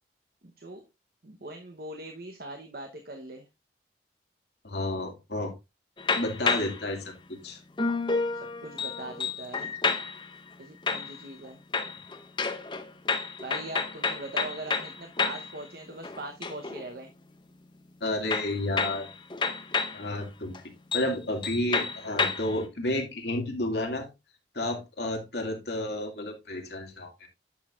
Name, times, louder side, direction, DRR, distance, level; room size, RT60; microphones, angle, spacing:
voice 1, 0.4-0.8 1.2-3.5 8.6-9.7 10.6-11.6 13.4-17.1, right 2 dB, 60° right, 4 dB, 1.0 m, -41 dB
voice 2, 4.6-5.5 6.2-7.1 7.4-7.6 18.0-19.1 19.9-20.5 20.9-24.1 24.5-27.3, left 1 dB, 70° left, 2 dB, 2.2 m, -31 dB
sound 1, 6.0-6.9 7.8-10.3 10.9-11.5 11.7-15.6 15.9-16.8 18.3-20.0 20.5-20.6 20.9-21.2 21.4-22.6, left 4 dB, 25° left, 0.8 m, -30 dB
10.5 x 6.4 x 2.5 m, 0.23 s
head